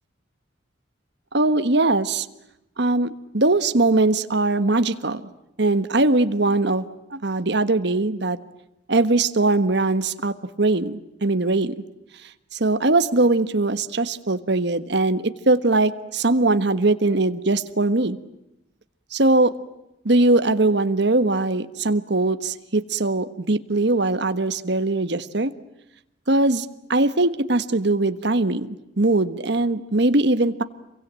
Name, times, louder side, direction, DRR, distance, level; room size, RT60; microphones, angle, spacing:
voice 1, 1.3-2.3 2.8-5.2 5.6-6.8 7.1-8.4 8.9-11.7 12.5-18.2 19.1-19.5 20.0-25.5 26.3-30.6, right 2 dB, 65° right, 10 dB, 1.5 m, -21 dB
28.5 x 23.5 x 9.0 m, 0.87 s
head